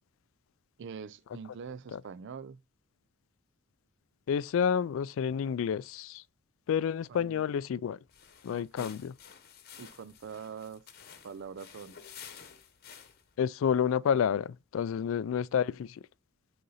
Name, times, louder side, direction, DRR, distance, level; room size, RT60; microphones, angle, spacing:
voice 1, 0.8-2.6 7.1-7.4 8.5-9.0 9.8-10.8 11.2-12.0 15.2-15.4, right 6 dB, 60° right, 0.4 m, -44 dB
voice 2, 4.3-6.2 6.7-8.0 8.4-9.1 13.4-16.0, left 7 dB, 70° left, 0.3 m, -29 dB
sound 1, 8.1-13.3, left 8 dB, 50° left, 1.0 m, -52 dB
6.5 x 4.2 x 5.5 m
head